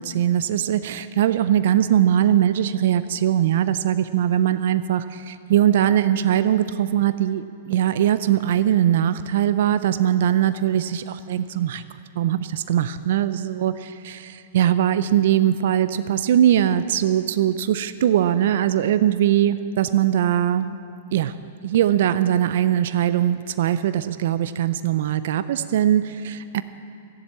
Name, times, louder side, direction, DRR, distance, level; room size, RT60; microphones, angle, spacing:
voice 1, 0.0-11.8 12.2-20.8 21.1-21.3 21.6-26.6, right 11 dB, 65° right, 13 dB, 0.5 m, -21 dB
14.5 x 7.5 x 8.5 m, 2.5 s
hypercardioid pair, 125°, 0 cm